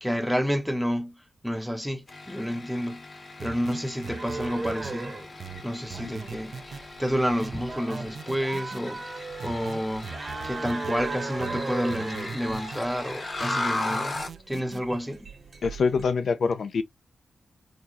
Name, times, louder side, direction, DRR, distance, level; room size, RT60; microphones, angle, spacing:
voice 1, 0.0-3.0 3.4-5.2 5.6-9.0 9.4-10.1 10.4-14.1 14.5-15.3, equal, ahead, 0.6 m, -29 dB
sound 1, 2.1-14.4, left 2 dB, 35° left, 0.8 m, -37 dB
sound 2, 3.4-5.0 5.4-6.8 7.4-8.8 9.4-11.0 11.4-12.8 13.4-14.8, right 6 dB, 60° right, 0.4 m, -40 dB
sound 3, 4.0-16.0, right 3 dB, 40° right, 1.1 m, -38 dB
voice 2, 15.6-16.8, left 5 dB, 60° left, 0.4 m, -25 dB
3.8 x 2.2 x 2.9 m
wide cardioid pair, 135°, 0 cm